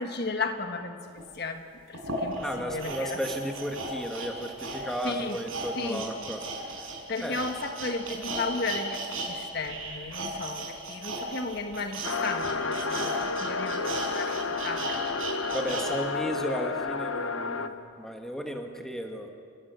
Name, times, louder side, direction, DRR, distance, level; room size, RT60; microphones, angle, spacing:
voice 1, 0.0-1.7 2.2-3.2 5.0-5.4 5.8-6.0 7.1-14.4 14.6-15.1, left 3 dB, 50° left, 6 dB, 1.5 m, -34 dB
sound 1, 1.2-1.3 1.9-9.3 9.6-15.9 16.3-16.4, right 2 dB, 75° right, 6.3 m, -36 dB
voice 2, 2.4-6.4 7.2-7.5 13.9-14.2 15.5-19.3, equal, ahead, 3 dB, 1.7 m, -34 dB
sound 2, 12.0-17.7, left 4 dB, 70° left, 1.2 m, -31 dB
30.0 x 16.0 x 9.6 m, 2.3 s
head